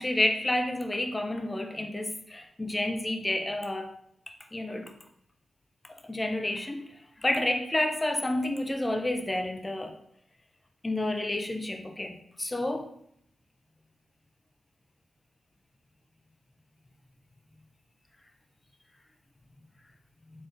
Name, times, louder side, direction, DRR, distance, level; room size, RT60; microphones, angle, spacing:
voice 1, 0.0-3.9 4.5-4.9 6.0-6.9 7.2-9.9 10.8-12.9, left 1 dB, 20° left, 0.5 m, -30 dB
4.0 x 3.6 x 2.5 m
cardioid pair, 60°, 0 cm